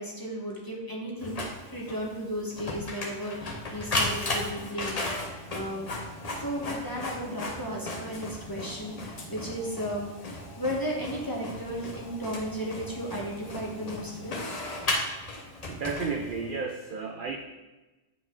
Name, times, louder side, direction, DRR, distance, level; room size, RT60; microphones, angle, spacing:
voice 1, 0.0-14.4, equal, 15° left, -3 dB, 1.2 m, -35 dB
Printer, 1.2-16.6, left 2 dB, 35° left, 0.8 m, -35 dB
voice 2, 15.4-17.4, right 5 dB, 60° right, 4 dB, 0.6 m, -33 dB
8.1 x 4.9 x 3.8 m, 1.1 s
omnidirectional pair, 1.3 m